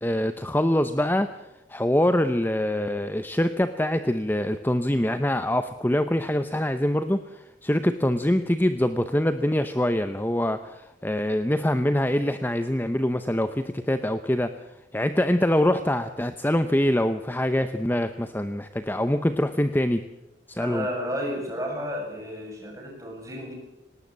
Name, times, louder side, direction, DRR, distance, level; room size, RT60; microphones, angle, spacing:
voice 1, 0.0-14.5 14.9-20.0 20.5-20.9, left 1 dB, 10° left, 10 dB, 0.7 m, -24 dB
voice 2, 20.6-23.5, equal, 15° right, 0 dB, 7.0 m, -32 dB
19.0 x 19.0 x 7.5 m, 0.96 s
head